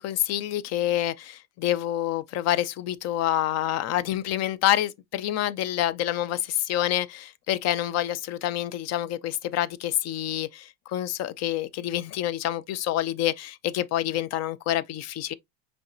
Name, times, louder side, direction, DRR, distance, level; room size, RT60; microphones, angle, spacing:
voice 1, 0.0-15.3, left 12 dB, 50° left, 0.6 m, -27 dB
5.2 x 3.3 x 2.6 m
hypercardioid pair, 90°, 35 cm